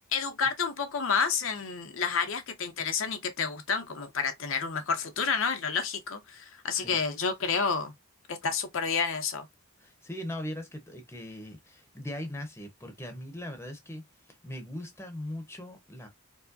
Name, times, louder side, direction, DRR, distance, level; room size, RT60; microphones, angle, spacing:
voice 1, 0.1-7.9 8.3-9.5, left 5 dB, 65° left, 0.7 m, -30 dB
voice 2, 9.8-16.1, left 1 dB, 10° left, 0.7 m, -40 dB
4.5 x 2.1 x 2.5 m
head